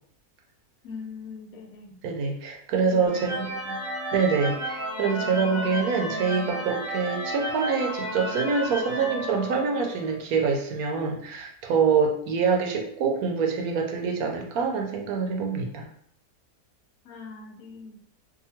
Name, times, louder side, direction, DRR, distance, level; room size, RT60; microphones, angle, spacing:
voice 1, 0.8-1.9 2.8-3.8 17.0-18.0, left 5 dB, 70° left, 1 dB, 1.0 m, -41 dB
voice 2, 2.0-3.5 4.1-15.9, right 5 dB, 75° right, 2 dB, 1.0 m, -25 dB
sound 1, 3.1-10.1, right 1 dB, 25° right, 0.9 m, -32 dB
2.7 x 2.4 x 2.8 m, 0.64 s
omnidirectional pair, 1.6 m